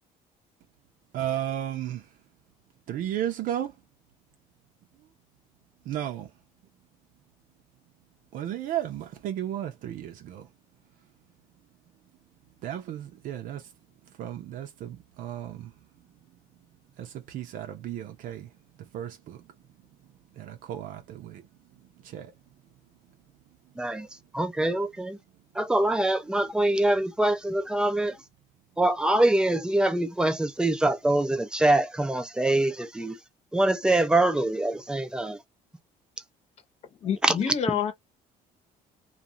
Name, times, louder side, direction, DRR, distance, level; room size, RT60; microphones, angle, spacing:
voice 1, 1.1-2.1 2.9-3.8 5.8-6.3 8.3-10.5 12.6-13.7 14.2-15.7 17.0-18.5 18.8-19.5 20.3-21.4 22.0-22.3, right 11 dB, 65° right, 0.7 m, -34 dB
voice 2, 23.8-24.1 24.3-25.2 25.6-28.2 28.8-33.2 33.5-35.4 37.2-37.5, right 1 dB, 5° right, 0.5 m, -24 dB
voice 3, 37.0-37.9, left 8 dB, 45° left, 0.9 m, -27 dB
2.5 x 2.3 x 2.7 m
cardioid pair, 145°, 15 cm